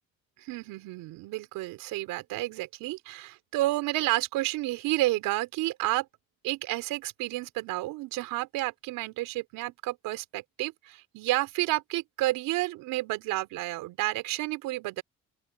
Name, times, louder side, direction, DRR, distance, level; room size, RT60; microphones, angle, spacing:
voice 1, 0.4-6.1 6.4-15.0, right 18 dB, 80° right, 4.1 m, -31 dB
open air
hypercardioid pair, 55°, 33 cm